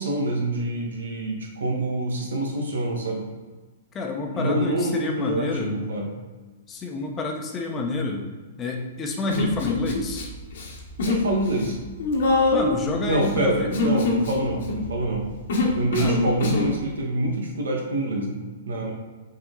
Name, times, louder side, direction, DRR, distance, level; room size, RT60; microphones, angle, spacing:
voice 1, 0.0-3.2 4.3-6.1 11.1-11.8 13.0-15.3 15.7-18.9, right 1 dB, 85° right, 0 dB, 1.7 m, -26 dB
voice 2, 3.9-5.8 6.7-8.2 8.6-10.3 12.5-13.7 16.0-16.3, left 3 dB, 20° left, 1 dB, 1.1 m, -29 dB
Human voice, 9.3-10.2 10.5-11.3 11.5-16.7, left 2 dB, 70° left, 1.6 m, -24 dB
6.1 x 4.1 x 4.1 m, 1.4 s
hypercardioid pair, 135°, 0 cm